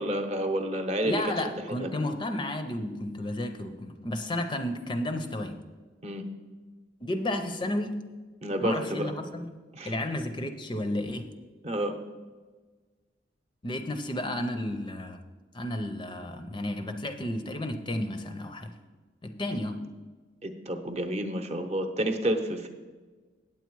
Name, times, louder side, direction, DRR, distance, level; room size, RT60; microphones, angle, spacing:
voice 1, 0.0-1.5 1.8-1.9 6.0-6.2 8.4-9.1 9.7-9.9 11.6-11.9 20.4-22.7, right 1 dB, 35° right, 6 dB, 0.8 m, -30 dB
voice 2, 1.0-5.6 7.0-8.0 8.6-9.6 9.8-11.3 13.6-15.2 15.5-18.7 19.2-19.8, left 1 dB, 25° left, 7 dB, 0.5 m, -32 dB
8.8 x 8.2 x 4.6 m, 1.4 s
head